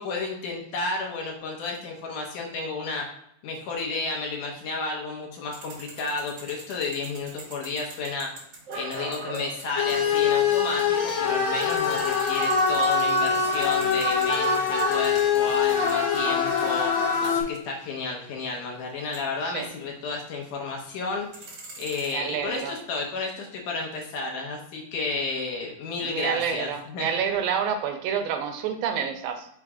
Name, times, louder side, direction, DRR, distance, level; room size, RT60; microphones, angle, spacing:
voice 1, 0.0-3.1 3.4-8.3 8.7-21.5 21.8-27.1, left 3 dB, 70° left, 0 dB, 2.2 m, -32 dB
sound 1, 5.5-11.0 11.2-20.6 21.0-22.1, right 2 dB, 50° right, 2.3 m, -44 dB
sound 2, 9.8-17.4, left 5 dB, 55° left, 2.3 m, -23 dB
voice 2, 22.1-22.7 26.0-29.5, right 7 dB, 80° right, 6 dB, 2.4 m, -28 dB
6.0 x 3.3 x 4.8 m, 0.73 s
omnidirectional pair, 4.2 m